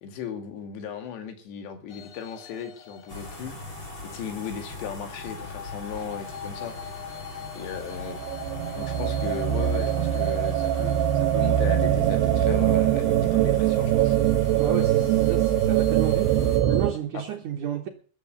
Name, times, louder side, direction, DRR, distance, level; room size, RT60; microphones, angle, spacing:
voice 1, 0.0-3.6 4.0-6.7 7.5-8.2 8.8-14.2 17.1-17.2, left 7 dB, 85° left, 6 dB, 4.2 m, -36 dB
sound 1, 1.9-17.0, left 7 dB, 60° left, 1.4 m, -45 dB
sound 2, 3.1-16.6, left 3 dB, 30° left, 4.1 m, -40 dB
sound 3, 7.8-16.9, right 12 dB, 80° right, 2.7 m, -23 dB
voice 2, 14.6-16.4 16.7-17.9, right 8 dB, 65° right, 4 dB, 2.2 m, -31 dB
14.0 x 9.8 x 6.7 m, 0.42 s
omnidirectional pair, 4.8 m